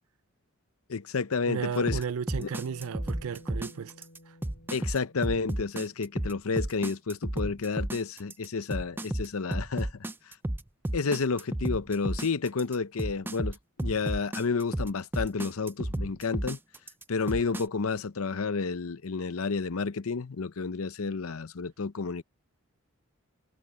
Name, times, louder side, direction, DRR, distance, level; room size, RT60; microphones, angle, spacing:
voice 1, 0.9-2.0 2.4-2.5 4.7-9.9 10.9-16.6 17.1-22.2, left 4 dB, 80° left, 0.7 m, -30 dB
voice 2, 1.5-3.9, right 6 dB, 80° right, 0.4 m, -34 dB
sound 1, 1.9-17.6, right 1 dB, 10° right, 0.4 m, -32 dB
Bass guitar, 2.4-6.8, left 1 dB, 65° left, 7.7 m, -53 dB
head